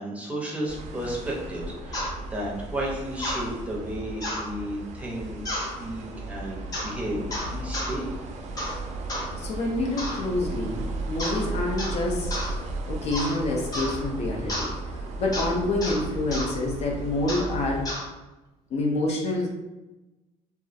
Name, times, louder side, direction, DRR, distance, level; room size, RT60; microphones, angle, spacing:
voice 1, 0.0-7.2 7.5-8.1, right 1 dB, 10° right, -3 dB, 0.6 m, -33 dB
sound 1, 0.7-17.9, right 2 dB, 60° right, 0.4 m, -35 dB
sound 2, 1.9-2.1 3.2-3.4 4.2-4.5 5.4-5.7 6.7-6.9 7.3-7.9 8.6-8.8 9.1-9.3 10.0-10.2 11.2-11.4 11.8-12.0 12.3-12.5 13.1-13.4 13.7-14.0 14.5-14.7 15.3-15.5 15.8-16.0 16.3-16.5 17.3-17.5 17.8-18.0, left 1 dB, 25° left, 0.8 m, -31 dB
voice 2, 9.4-12.3 12.9-14.7 15.2-17.9 18.7-19.5, left 2 dB, 55° left, 0 dB, 0.5 m, -27 dB
2.3 x 2.0 x 2.6 m, 1.1 s
cardioid pair, 130°, 13 cm